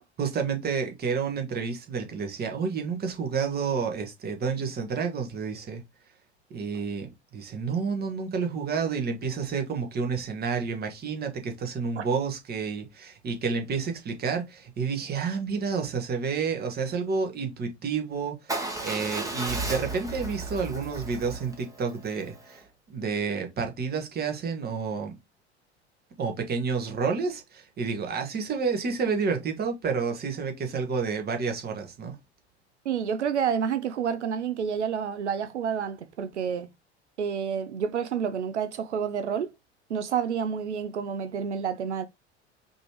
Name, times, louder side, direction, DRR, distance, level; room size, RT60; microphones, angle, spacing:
voice 1, 0.2-5.8 6.5-22.6 22.9-25.2 26.2-32.1, right 5 dB, 30° right, 1.4 m, -30 dB
Motorcycle / Engine starting / Idling, 18.5-22.6, right 2 dB, 10° right, 1.3 m, -34 dB
voice 2, 32.9-36.7 37.2-39.5 39.9-42.1, right 7 dB, 85° right, 0.5 m, -29 dB
5.3 x 3.1 x 3.0 m
figure-of-eight pair, 80°, 34 cm